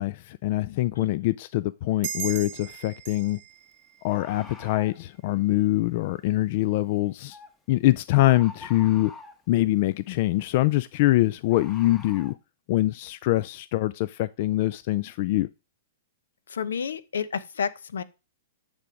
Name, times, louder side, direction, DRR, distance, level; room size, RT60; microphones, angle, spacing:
voice 1, 0.0-3.4 4.0-7.4 7.7-9.1 9.5-12.3 12.7-15.5, left 16 dB, 50° left, 0.3 m, -24 dB
sound 1, 2.0-5.1, right 10 dB, 50° right, 0.9 m, -38 dB
Bird, 2.4-2.5 4.1-5.0 7.3-7.5 8.1-9.5 11.5-12.3, left 3 dB, 15° left, 1.0 m, -45 dB
voice 2, 16.5-18.0, left 7 dB, 90° left, 0.7 m, -30 dB
9.6 x 3.6 x 5.1 m
hypercardioid pair, 140°, 0 cm